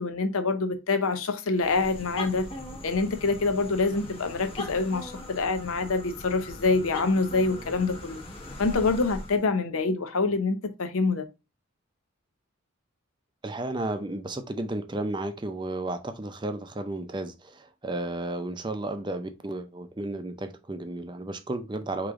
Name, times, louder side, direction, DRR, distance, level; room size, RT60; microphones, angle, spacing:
voice 1, 0.0-2.5 2.8-8.2 8.6-11.2, left 3 dB, 85° left, 0.7 m, -26 dB
sound 1, 1.6-9.4, left 1 dB, 25° left, 0.9 m, -40 dB
voice 2, 13.4-22.1, right 2 dB, 20° right, 0.5 m, -33 dB
4.8 x 3.0 x 3.7 m
head